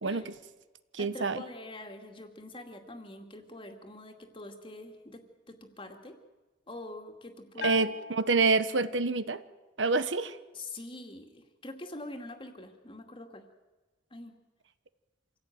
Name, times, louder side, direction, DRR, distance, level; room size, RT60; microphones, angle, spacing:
voice 1, 0.0-0.3 0.9-1.4 7.6-9.4 9.8-10.4, right 3 dB, 80° right, 13 dB, 1.1 m, -27 dB
voice 2, 1.0-5.2 5.5-6.2 6.7-7.8 10.5-13.4 14.1-14.3, left 2 dB, 30° left, 5 dB, 2.4 m, -44 dB
Bell, 7.6-9.2, left 5 dB, 60° left, 1.6 m, -41 dB
26.5 x 16.5 x 9.4 m, 1.2 s
head